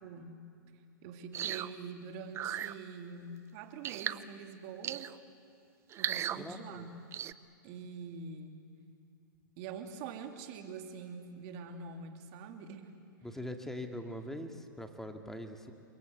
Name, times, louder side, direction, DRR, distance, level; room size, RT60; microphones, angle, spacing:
voice 1, 0.0-0.4 1.0-5.1 6.0-6.9 7.6-8.6 9.6-12.9, right 5 dB, 45° right, 5 dB, 3.1 m, -45 dB
sound 1, 1.3-1.7 2.3-2.7 3.8-4.2 4.8-5.2 5.9-6.4 7.1-7.3, right 10 dB, 25° right, 0.7 m, -36 dB
voice 2, 6.4-6.9 13.2-15.7, left 1 dB, 5° left, 5 dB, 2.3 m, -42 dB
29.0 x 24.5 x 8.1 m, 2.4 s
hypercardioid pair, 125°, 11 cm